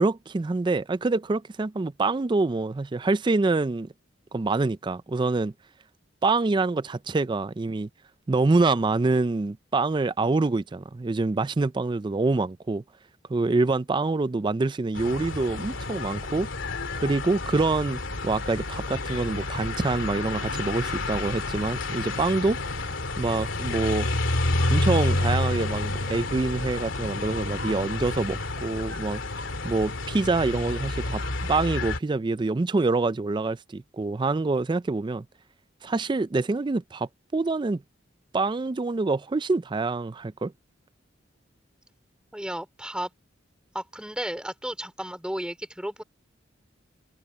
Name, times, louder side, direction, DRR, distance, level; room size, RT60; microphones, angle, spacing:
voice 1, 0.0-3.9 4.3-5.5 6.2-7.9 8.3-12.8 13.3-16.5 16.9-22.6 23.2-24.1 24.7-29.2 29.6-35.2 35.8-37.8 38.3-40.5, right 3 dB, 25° right, 0.4 m, -26 dB
sound 1, 15.0-32.0, left 2 dB, 90° left, 2.6 m, -29 dB
voice 2, 42.3-43.1 43.7-46.0, right 1 dB, 5° right, 4.1 m, -33 dB
head